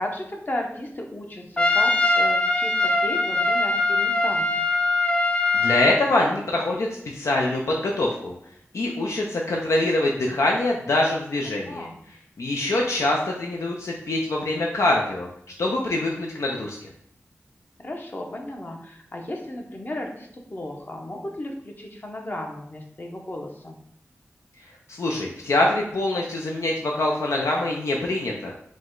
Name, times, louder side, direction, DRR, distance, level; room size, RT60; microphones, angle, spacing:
voice 1, 0.0-4.4 11.7-12.0 17.8-23.8, left 1 dB, 40° left, 2 dB, 0.8 m, -34 dB
Trumpet, 1.6-6.0, left 2 dB, 20° left, 0.4 m, -22 dB
voice 2, 5.6-6.9 7.1-8.3 8.7-11.9 12.4-15.3 15.6-16.8 25.0-28.5, left 2 dB, 75° left, -1 dB, 0.5 m, -24 dB
4.9 x 2.2 x 3.7 m, 0.67 s
wide cardioid pair, 65°, 5 cm